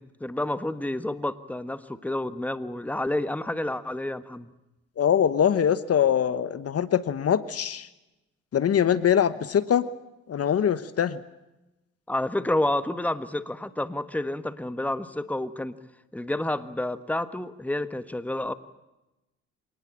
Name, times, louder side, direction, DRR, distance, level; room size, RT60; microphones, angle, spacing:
voice 1, 0.0-4.5 12.1-15.8 16.1-18.5, left 1 dB, 5° left, 12 dB, 1.5 m, -29 dB
voice 2, 5.0-7.9 8.5-9.9 10.3-11.2, left 9 dB, 50° left, 14 dB, 1.2 m, -23 dB
26.0 x 19.0 x 8.8 m, 0.98 s
cardioid pair, 90°, 30 cm